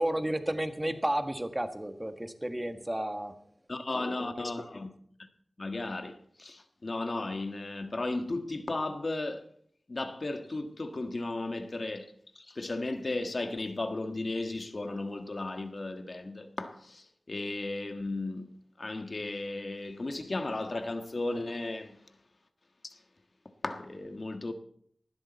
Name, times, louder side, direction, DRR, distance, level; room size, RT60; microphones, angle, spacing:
voice 1, 0.0-3.3, right 1 dB, 20° right, 1.5 m, -32 dB
voice 2, 3.7-4.9 5.6-9.4 9.9-18.5 18.8-22.0 22.8-23.0 23.6-24.5, left 2 dB, 55° left, 1.5 m, -35 dB
18.5 x 12.5 x 4.2 m
wide cardioid pair, 55°, 0 cm